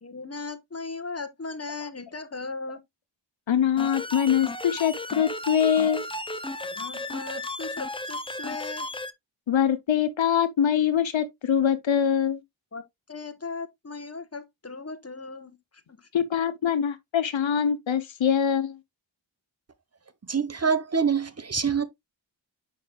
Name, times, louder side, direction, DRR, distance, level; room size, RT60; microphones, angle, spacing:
voice 1, 0.0-2.8 6.6-8.9 12.7-12.8 13.1-15.6 15.9-16.1, left 3 dB, 30° left, 1.1 m, -37 dB
voice 2, 3.5-6.0 9.5-12.4 16.1-18.7, left 8 dB, 75° left, 0.9 m, -23 dB
sound 1, 3.8-9.1, left 2 dB, 10° left, 0.6 m, -34 dB
voice 3, 20.3-21.8, right 6 dB, 35° right, 1.0 m, -25 dB
7.0 x 5.7 x 2.3 m
wide cardioid pair, 55°, 46 cm